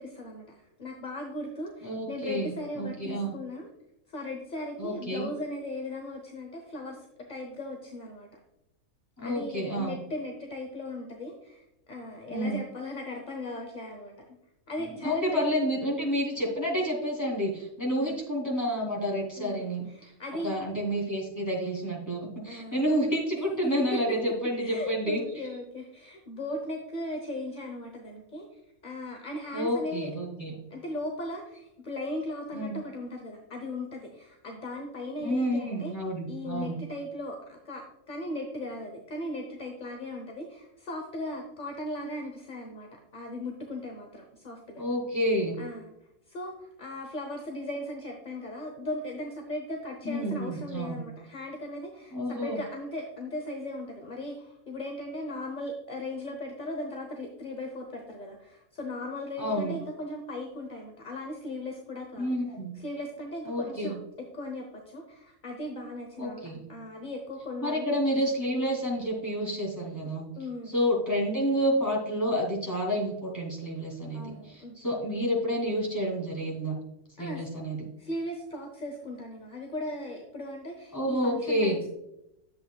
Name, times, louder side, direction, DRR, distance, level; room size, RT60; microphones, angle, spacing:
voice 1, 0.0-3.7 4.1-8.3 9.2-14.1 14.7-15.7 18.0-18.2 19.4-20.5 22.5-22.8 24.6-30.1 30.7-35.9 36.3-44.8 45.6-45.9 46.3-62.3 62.7-64.0 64.3-66.4 66.7-67.9 70.4-70.7 74.1-74.8 77.2-77.4 78.0-81.9, left 1 dB, 35° left, 2 dB, 1.0 m, -38 dB
voice 2, 1.8-3.4 4.8-5.3 9.2-10.0 12.3-12.6 14.8-20.1 20.4-25.2 29.5-30.5 32.5-32.8 35.2-36.8 44.8-45.5 50.0-51.0 52.1-52.6 59.4-59.8 62.2-62.8 63.5-63.9 66.2-66.6 67.6-70.2 70.7-76.7 77.2-77.8 80.9-81.8, equal, 10° left, -4 dB, 2.7 m, -29 dB
11.0 x 7.6 x 2.3 m, 0.86 s
omnidirectional pair, 1.6 m